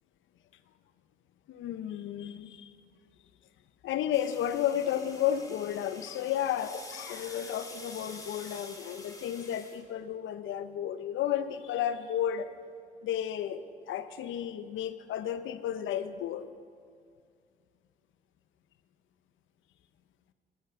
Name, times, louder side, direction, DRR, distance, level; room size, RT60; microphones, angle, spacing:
voice 1, 1.5-2.7 3.8-12.5 13.0-16.5, left 10 dB, 75° left, 12 dB, 0.6 m, -32 dB
sound 1, 4.1-9.8, left 2 dB, 15° left, 1.6 m, -47 dB
9.3 x 8.7 x 6.8 m, 2.2 s
cardioid pair, 90°, 20 cm